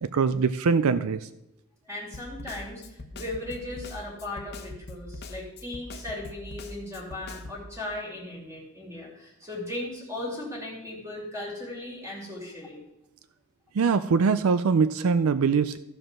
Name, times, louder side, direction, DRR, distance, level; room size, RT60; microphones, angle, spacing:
voice 1, 0.0-1.3 13.7-15.8, right 5 dB, 85° right, 12 dB, 0.4 m, -23 dB
voice 2, 1.8-12.8, left 1 dB, 10° right, -5 dB, 2.7 m, -37 dB
Snare drum, 2.1-7.6, left 2 dB, 50° left, 0.9 m, -42 dB
14.0 x 5.2 x 6.0 m, 0.88 s
head